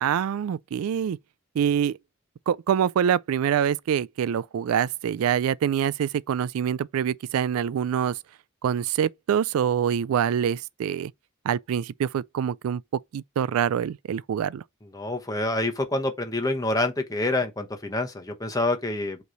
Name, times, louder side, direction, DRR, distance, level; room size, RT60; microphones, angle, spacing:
voice 1, 0.0-1.2 1.6-2.0 2.5-8.2 8.6-11.1 11.4-14.6, right 8 dB, 80° right, 0.3 m, -25 dB
voice 2, 14.9-19.2, left 2 dB, 15° left, 1.0 m, -27 dB
8.2 x 3.1 x 3.9 m
head